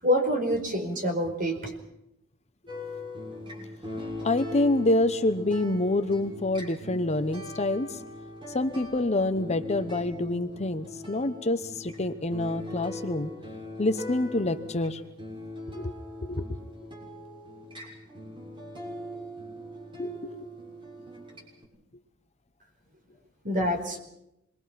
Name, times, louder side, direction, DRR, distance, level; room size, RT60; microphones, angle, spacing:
voice 1, 0.0-1.7 23.4-24.0, equal, 40° right, 4 dB, 5.1 m, -26 dB
sound 1, 2.7-21.6, left 1 dB, 25° right, 6.6 m, -41 dB
voice 2, 4.2-8.0 8.5-13.3 13.8-15.0 15.7-15.9 16.3-16.4 20.0-20.5, left 2 dB, 30° left, 9 dB, 1.0 m, -27 dB
27.0 x 22.5 x 5.9 m, 0.84 s
head